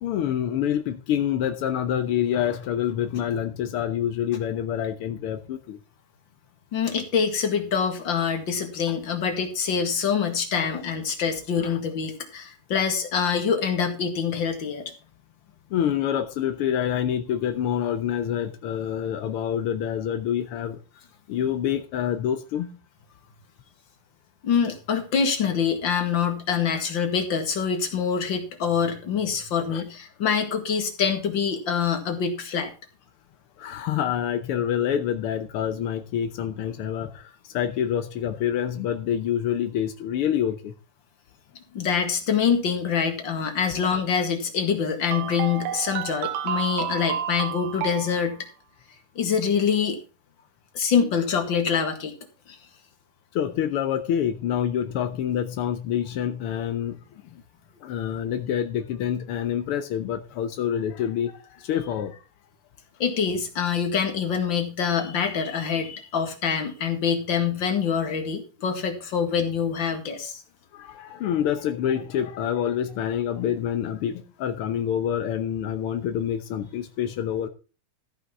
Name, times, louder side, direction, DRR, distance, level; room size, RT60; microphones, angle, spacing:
voice 1, 0.0-5.8 10.5-10.8 11.6-11.8 15.7-20.8 21.3-22.8 29.7-29.8 33.6-40.7 53.3-57.4 57.8-62.2 70.7-77.5, left 9 dB, 75° left, 1.3 m, -27 dB
voice 2, 6.7-14.9 24.4-32.7 41.7-48.5 49.2-50.0 50.7-52.1 52.5-52.6 63.0-70.4, left 6 dB, 40° left, 2.3 m, -25 dB
sound 1, 45.1-48.3, right 10 dB, 70° right, 2.2 m, -30 dB
14.5 x 5.8 x 5.9 m
omnidirectional pair, 3.6 m